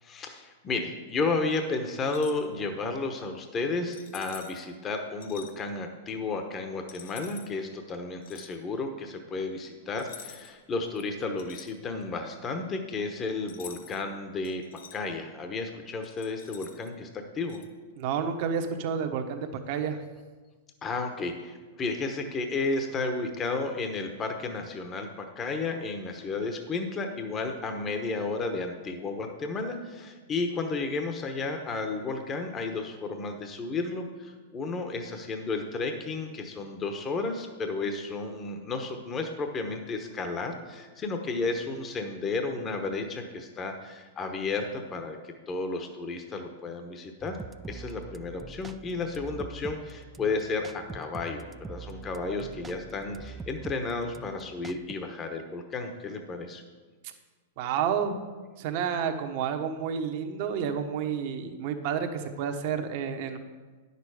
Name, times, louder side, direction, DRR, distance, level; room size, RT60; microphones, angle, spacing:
voice 1, 0.0-14.6 14.9-17.6 20.8-47.4 47.7-56.6, left 3 dB, 25° left, 5 dB, 1.0 m, -32 dB
sound 1, 2.0-2.5 3.9-4.7 5.2-5.5 6.9-7.5 8.2-8.6 10.0-10.6 11.0-12.2 13.5-14.0 14.4-15.0 16.0-16.9 17.5-17.7, left 8 dB, 70° left, 0.9 m, -47 dB
voice 2, 18.0-20.0 57.6-58.2 58.6-63.4, right 7 dB, 55° right, 6 dB, 1.1 m, -30 dB
sound 2, 47.2-54.9, right 4 dB, 15° right, 0.4 m, -44 dB
9.8 x 6.8 x 4.9 m, 1.4 s
hypercardioid pair, 115°, 0 cm